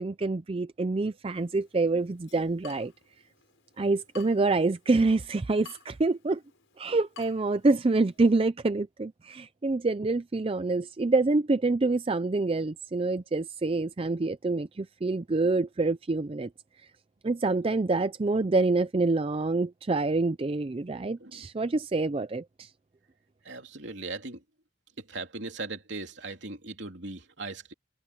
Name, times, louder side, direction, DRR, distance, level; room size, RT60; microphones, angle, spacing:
voice 1, 0.0-2.9 3.8-6.4 6.8-16.5 17.2-22.7, right 3 dB, 30° right, 0.4 m, -26 dB
Water tap faucet / Drip, 1.3-8.3, left 9 dB, 80° left, 4.5 m, -55 dB
voice 2, 23.4-24.4 25.0-27.7, right 3 dB, 65° right, 3.4 m, -39 dB
head